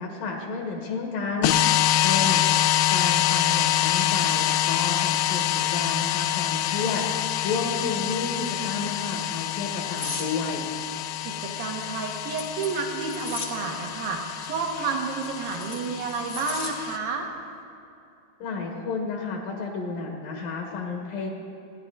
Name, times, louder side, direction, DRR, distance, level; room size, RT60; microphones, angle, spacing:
voice 1, 0.0-10.7 18.4-21.3, left 4 dB, 70° left, 1 dB, 2.9 m, -31 dB
sound 1, 1.4-17.0, left 13 dB, 85° left, 2.5 m, -26 dB
sound 2, 10.0-10.3 11.7-13.6 15.0-16.7 17.1-17.4, left 3 dB, 45° left, 1.2 m, -36 dB
voice 2, 11.2-17.3, right 4 dB, 75° right, 1 dB, 3.1 m, -30 dB
28.0 x 10.5 x 3.9 m, 2.7 s
omnidirectional pair, 4.3 m